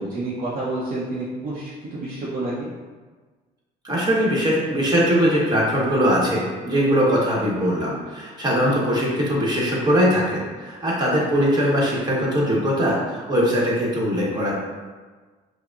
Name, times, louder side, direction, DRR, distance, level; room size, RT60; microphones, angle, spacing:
voice 1, 0.0-2.7, right 2 dB, 50° right, -7 dB, 0.7 m, -29 dB
voice 2, 3.8-14.5, equal, 25° right, -4 dB, 1.2 m, -21 dB
5.7 x 2.1 x 2.5 m, 1.4 s
cardioid pair, 110°, 17 cm